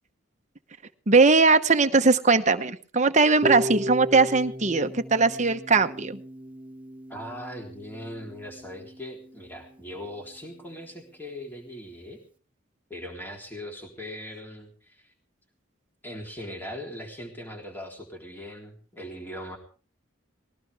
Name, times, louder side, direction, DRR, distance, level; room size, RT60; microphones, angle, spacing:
voice 1, 1.1-6.2, right 4 dB, 35° right, 8 dB, 1.0 m, -20 dB
Harp, 3.4-9.5, right 1 dB, 5° right, 1.3 m, -36 dB
voice 2, 7.1-12.2 12.9-15.1 16.0-19.6, left 1 dB, 10° left, 1 dB, 3.6 m, -40 dB
20.0 x 18.0 x 3.5 m, 0.39 s
head